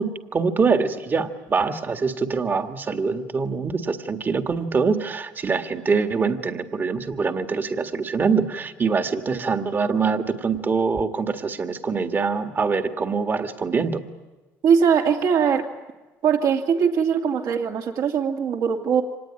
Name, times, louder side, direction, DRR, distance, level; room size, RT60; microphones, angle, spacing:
voice 1, 0.0-14.0, right 5 dB, 30° right, 7 dB, 1.8 m, -24 dB
voice 2, 14.6-15.6 16.2-19.0, right 7 dB, 60° right, 3 dB, 2.6 m, -21 dB
25.0 x 19.0 x 9.8 m, 1.2 s
supercardioid pair, 90°, 7 cm